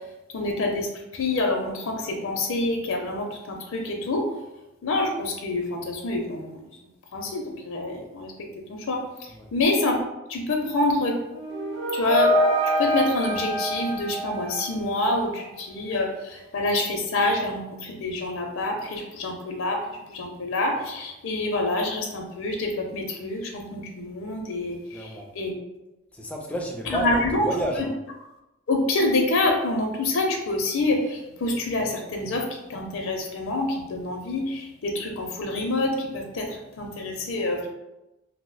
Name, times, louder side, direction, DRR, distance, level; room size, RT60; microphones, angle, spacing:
voice 1, 0.3-0.9 1.1-4.3 4.8-6.6 7.1-8.3 8.7-10.0 10.3-11.2 11.9-12.4 12.6-25.5 26.9-27.5 28.7-37.7, left 2 dB, 70° left, 2 dB, 0.5 m, -27 dB
sound 1, 11.3-15.2, equal, 60° right, 0.8 m, -25 dB
voice 2, 24.9-25.3 26.1-27.9, equal, 5° left, 0 dB, 0.3 m, -31 dB
2.7 x 2.0 x 3.8 m, 0.96 s
head